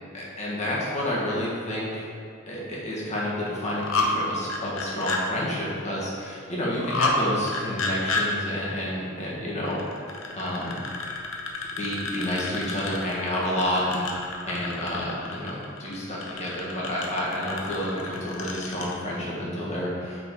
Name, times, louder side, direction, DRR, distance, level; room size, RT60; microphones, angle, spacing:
voice 1, 0.1-2.0 2.5-9.8 10.4-10.8 11.8-20.2, left 1 dB, 35° left, -6 dB, 1.5 m, -29 dB
sound 1, 3.5-4.1 4.4-5.2 6.7-7.2 7.5-8.2 9.7-18.9, left 4 dB, 80° left, 0.8 m, -31 dB
5.9 x 5.1 x 3.8 m, 2.5 s
head